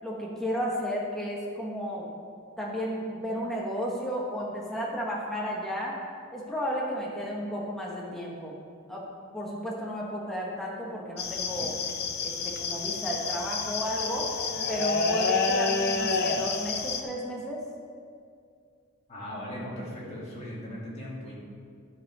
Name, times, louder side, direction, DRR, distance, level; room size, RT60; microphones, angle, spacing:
voice 1, 0.0-2.1 2.6-6.0 6.3-8.6 8.9-9.0 9.3-11.8 12.2-14.3 14.7-17.6, equal, ahead, -4 dB, 1.2 m, -33 dB
sound 1, 11.2-17.0, left 4 dB, 50° left, 0.7 m, -29 dB
voice 2, 19.1-21.3, equal, 30° left, -6 dB, 2.3 m, -38 dB
12.5 x 4.9 x 4.8 m, 2.3 s
head